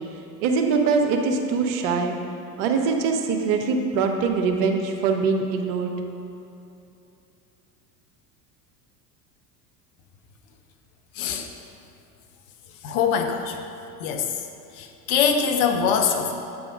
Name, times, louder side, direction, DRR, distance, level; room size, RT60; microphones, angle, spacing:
voice 1, 0.4-2.2 2.6-5.9, right 5 dB, 60° right, 4 dB, 0.9 m, -23 dB
voice 2, 11.1-11.5 12.8-13.6 14.0-14.5 14.7-16.3, left 6 dB, 60° left, 5 dB, 0.8 m, -23 dB
8.4 x 3.6 x 5.0 m, 2.8 s
hypercardioid pair, 80°, 48 cm